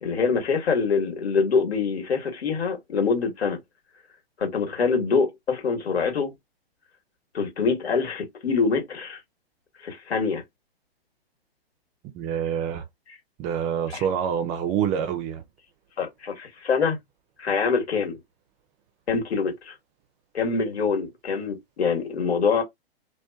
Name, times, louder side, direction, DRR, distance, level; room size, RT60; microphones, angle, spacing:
voice 1, 0.0-3.6 4.4-6.3 7.3-9.2 9.8-10.4 13.9-14.0 16.0-17.0 17.4-18.2 19.1-19.8 20.3-22.6, left 5 dB, 80° left, 1.4 m, -25 dB
voice 2, 12.1-12.8 13.4-15.4, right 8 dB, 20° right, 0.4 m, -26 dB
2.5 x 2.2 x 2.2 m
hypercardioid pair, 120°, 31 cm